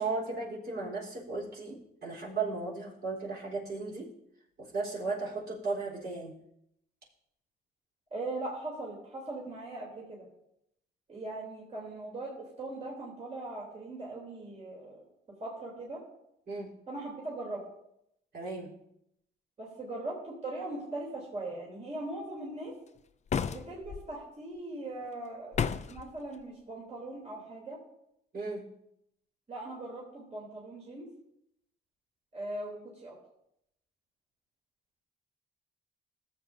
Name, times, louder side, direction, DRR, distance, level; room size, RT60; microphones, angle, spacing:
voice 1, 0.0-4.1 4.6-6.3 16.5-16.7 18.3-18.7 28.3-28.6, right 3 dB, 55° right, -5 dB, 4.1 m, -35 dB
voice 2, 8.1-10.3 11.1-15.1 15.4-16.0 16.9-17.7 19.6-22.8 23.5-27.8 29.5-31.1 32.3-33.2, right 2 dB, 35° right, -4 dB, 3.3 m, -40 dB
sound 1, 23.3-24.0 25.5-26.1, left 7 dB, 35° left, 0.5 m, -31 dB
15.0 x 7.7 x 2.7 m, 0.79 s
cardioid pair, 90°, 20 cm